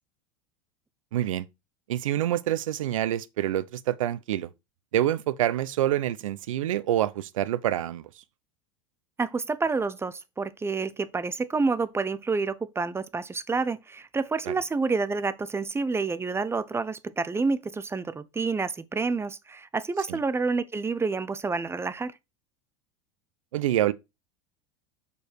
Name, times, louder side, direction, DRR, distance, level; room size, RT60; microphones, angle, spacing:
voice 1, 1.1-1.4 1.9-4.5 4.9-8.1 14.5-14.6 20.1-20.2 23.5-23.9, right 12 dB, 85° right, 0.7 m, -26 dB
voice 2, 9.2-22.1, right 4 dB, 15° right, 0.8 m, -28 dB
6.4 x 5.5 x 4.6 m
hypercardioid pair, 95°, 17 cm